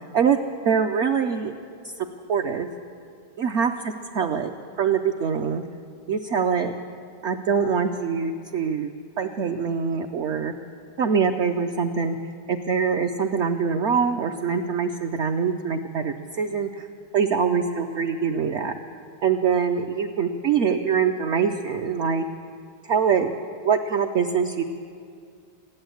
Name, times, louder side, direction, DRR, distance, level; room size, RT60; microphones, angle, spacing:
voice 1, 0.7-1.5 2.3-2.7 3.4-5.6 6.1-6.7 7.2-10.5 11.0-12.2 12.5-16.9 17.1-18.7 19.2-22.2 22.9-23.3 23.6-24.6, right 6 dB, 65° right, 4 dB, 0.7 m, -24 dB
16.5 x 11.0 x 7.9 m, 2.3 s
omnidirectional pair, 1.8 m